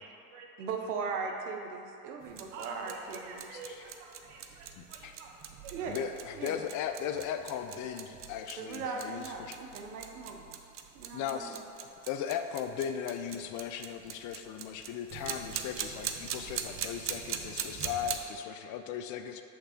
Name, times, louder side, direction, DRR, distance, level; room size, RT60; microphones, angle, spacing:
voice 1, 0.0-0.5 0.7-0.9 2.5-5.4 5.6-6.1, right 3 dB, 65° right, 0 dB, 1.2 m, -48 dB
voice 2, 0.6-3.5 5.7-6.0 6.3-6.6 8.5-10.6 10.9-11.6, right 5 dB, 90° right, 3 dB, 0.8 m, -38 dB
sound 1, 2.2-18.2, right 8 dB, 30° right, 0.4 m, -41 dB
voice 3, 3.5-3.8 4.8-5.2 5.9-9.6 11.1-11.6 12.1-19.4, left 8 dB, 45° left, 8 dB, 0.4 m, -37 dB
6.5 x 3.3 x 5.7 m, 2.7 s
hypercardioid pair, 90°, 44 cm